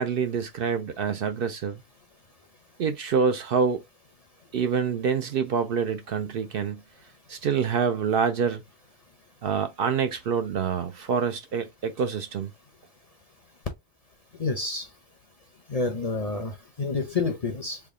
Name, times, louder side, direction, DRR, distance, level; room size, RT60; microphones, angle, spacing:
voice 1, 0.0-1.8 2.8-3.8 4.5-6.8 7.3-8.6 9.4-12.5, right 6 dB, 65° right, 0.7 m, -26 dB
voice 2, 14.4-14.9 15.7-17.8, left 3 dB, 45° left, 0.5 m, -28 dB
3.4 x 2.3 x 3.5 m
omnidirectional pair, 1.2 m